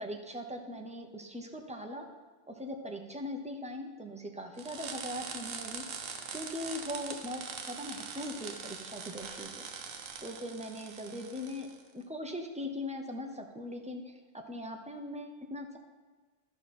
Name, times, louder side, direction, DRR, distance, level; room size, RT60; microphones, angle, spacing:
voice 1, 0.0-2.1 2.5-5.8 6.3-9.5 10.2-11.7 11.9-14.2 14.5-15.8, left 1 dB, 10° right, 2 dB, 0.4 m, -40 dB
sound 1, 4.6-11.8, right 6 dB, 90° right, 1.2 m, -43 dB
12.0 x 6.1 x 4.2 m, 1.3 s
omnidirectional pair, 1.3 m